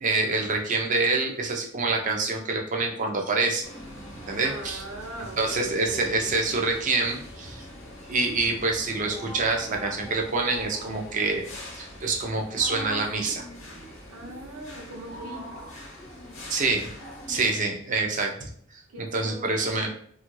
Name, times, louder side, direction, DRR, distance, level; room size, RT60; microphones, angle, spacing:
voice 1, 0.0-3.7 4.3-4.8 5.4-7.6 8.1-11.4 11.7-13.4 16.5-16.9 17.3-18.8 19.1-20.1, right 3 dB, 35° right, 2 dB, 0.5 m, -26 dB
sound 1, 3.6-17.5, equal, 60° left, 0.8 m, -42 dB
voice 2, 4.4-6.3 14.1-15.7 18.9-19.7, right 1 dB, 75° right, 0 dB, 0.8 m, -41 dB
2.9 x 2.4 x 3.0 m, 0.62 s
head